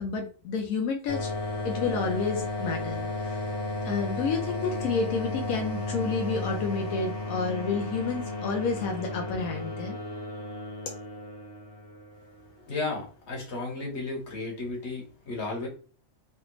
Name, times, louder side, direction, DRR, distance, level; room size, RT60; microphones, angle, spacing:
voice 1, 0.0-1.3 1.6-3.4 3.8-10.0 10.9-11.0, left 5 dB, 85° left, 2 dB, 1.1 m, -30 dB
sound 1, 1.1-12.5, left 2 dB, 25° left, 0.7 m, -34 dB
voice 2, 12.7-15.7, left 3 dB, 55° left, -1 dB, 1.5 m, -34 dB
3.2 x 2.4 x 3.0 m, 0.38 s
omnidirectional pair, 1.5 m